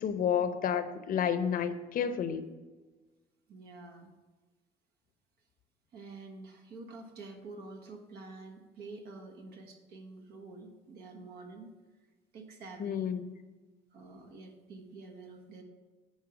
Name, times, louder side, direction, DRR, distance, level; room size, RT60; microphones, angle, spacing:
voice 1, 0.0-2.4 12.8-13.3, left 8 dB, 55° left, 11 dB, 0.7 m, -30 dB
voice 2, 3.5-4.1 5.9-11.7 12.3-13.1 13.9-15.6, right 3 dB, 70° right, 4 dB, 1.5 m, -48 dB
10.5 x 4.6 x 5.8 m, 1.3 s
cardioid pair, 110°, 17 cm